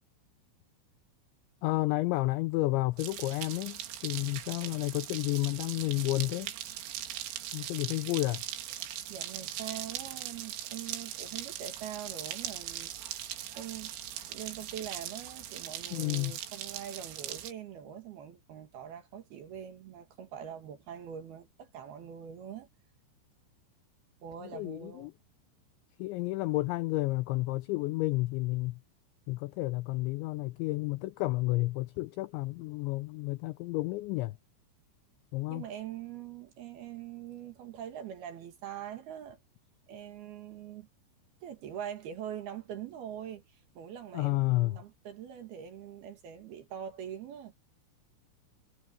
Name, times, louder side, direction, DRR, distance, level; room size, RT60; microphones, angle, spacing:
voice 1, 1.6-6.5 7.5-8.4 15.9-16.4 24.4-25.1 26.0-28.8 29.3-34.4 35.3-35.6 44.1-44.8, left 20 dB, 85° left, 2.6 m, -31 dB
sound 1, 3.0-17.5, right 11 dB, 80° right, 4.6 m, -40 dB
voice 2, 9.1-13.3 13.6-13.9 14.3-22.7 24.2-25.1 35.5-39.4 39.9-40.9 41.4-47.5, right 9 dB, 60° right, 3.3 m, -43 dB
omnidirectional pair, 5.9 m